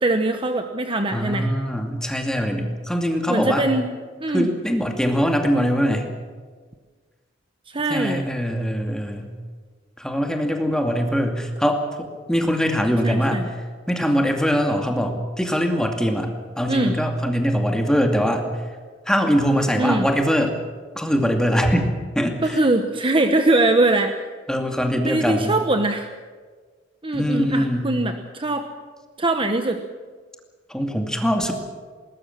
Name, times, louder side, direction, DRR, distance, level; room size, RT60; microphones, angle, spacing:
voice 1, 0.0-1.5 3.3-3.9 4.2-4.5 7.7-8.2 13.0-13.5 16.7-16.9 19.7-20.1 22.4-24.1 25.1-26.1 27.0-28.7 29.2-29.8, right 2 dB, 30° right, 6 dB, 1.1 m, -22 dB
voice 2, 1.1-3.7 4.3-6.1 7.9-9.3 10.0-13.6 13.9-16.3 16.6-18.5 19.1-20.6 20.9-22.6 24.5-25.6 27.1-27.9 30.7-31.5, equal, 5° left, 3 dB, 2.4 m, -22 dB
20.5 x 19.5 x 7.5 m, 1.5 s
head